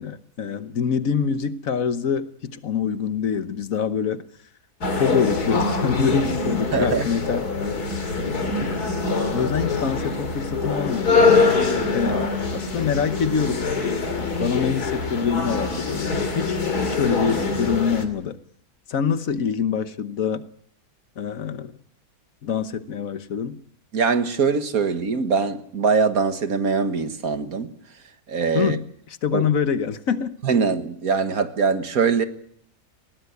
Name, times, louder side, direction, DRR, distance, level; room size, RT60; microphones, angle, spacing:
voice 1, 0.0-4.2 5.0-7.4 8.6-8.7 9.3-13.6 14.2-18.4 18.9-20.4 21.2-21.7 22.4-23.6 28.5-28.8 29.2-30.3, left 7 dB, 65° left, 1.4 m, -25 dB
sound 1, 4.8-18.1, left 4 dB, 85° left, 3.2 m, -24 dB
voice 2, 6.7-7.0 23.9-27.7 28.3-28.8 29.3-29.4 30.4-32.3, right 5 dB, 70° right, 2.0 m, -22 dB
20.5 x 18.0 x 8.2 m
omnidirectional pair, 1.6 m